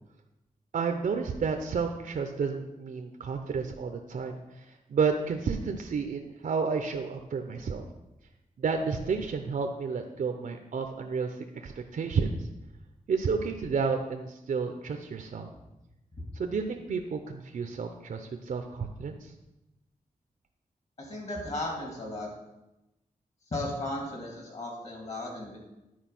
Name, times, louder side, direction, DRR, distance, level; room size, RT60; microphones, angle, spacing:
voice 1, 0.7-7.9 8.6-12.5 13.1-15.5 16.3-19.3, right 5 dB, 65° right, 5 dB, 0.6 m, -31 dB
voice 2, 21.0-22.3 23.5-25.6, left 1 dB, 50° left, -1 dB, 3.0 m, -35 dB
10.5 x 4.6 x 6.0 m, 0.96 s
wide cardioid pair, 115°, 14 cm